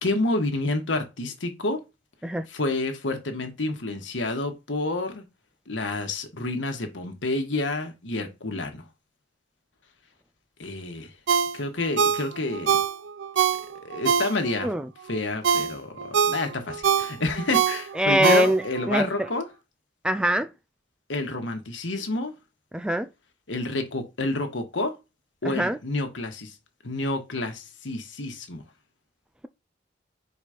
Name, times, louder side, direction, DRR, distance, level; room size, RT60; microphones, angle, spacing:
voice 1, 0.0-1.8 2.5-5.2 5.7-8.8 10.6-11.1 11.5-12.8 13.8-14.7 15.1-19.5 21.1-22.3 23.5-25.0 25.4-26.5 26.8-28.6, left 2 dB, 75° left, 1.4 m, -29 dB
Ringtone, 11.3-14.7 15.1-18.9 19.3-19.4, right 7 dB, 70° right, 0.5 m, -24 dB
voice 2, 18.0-18.6 18.9-19.1 20.0-20.5 22.7-23.1 25.5-25.8, equal, 5° right, 0.3 m, -22 dB
4.7 x 4.1 x 5.0 m
head